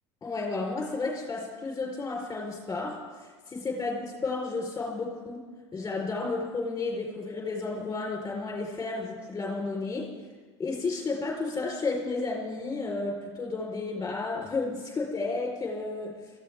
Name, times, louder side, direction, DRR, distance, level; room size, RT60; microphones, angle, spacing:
voice 1, 0.2-10.1 10.6-16.2, left 3 dB, 20° left, -1 dB, 4.3 m, -32 dB
25.0 x 14.5 x 3.6 m, 1.4 s
hypercardioid pair, 85°, 15 cm